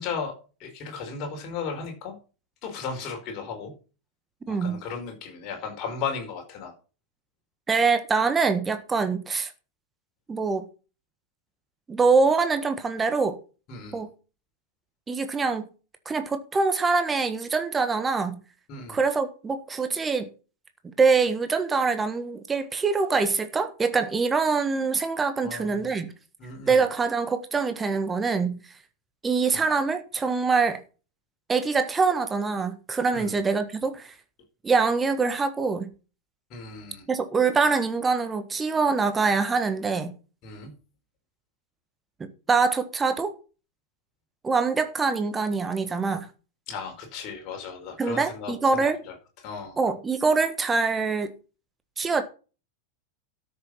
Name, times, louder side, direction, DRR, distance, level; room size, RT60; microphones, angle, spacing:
voice 1, 0.0-2.1 2.6-3.7 4.5-6.7 13.7-14.0 18.7-19.0 25.4-25.9 26.4-26.8 29.5-29.6 33.1-33.3 36.5-37.1 40.4-40.7 46.7-49.1 49.4-49.8, left 5 dB, 35° left, 4.6 m, -35 dB
voice 2, 4.5-4.8 7.7-9.5 10.3-10.7 11.9-13.4 13.9-14.1 15.1-15.7 16.0-18.4 18.9-20.3 20.8-26.1 26.7-28.6 29.2-30.8 31.5-34.1 34.6-35.9 37.1-40.1 42.2-43.3 44.4-46.3 48.0-49.0 49.8-51.3 52.0-52.2, right 4 dB, 15° right, 1.4 m, -24 dB
13.0 x 6.9 x 5.6 m
figure-of-eight pair, 90°, 0 cm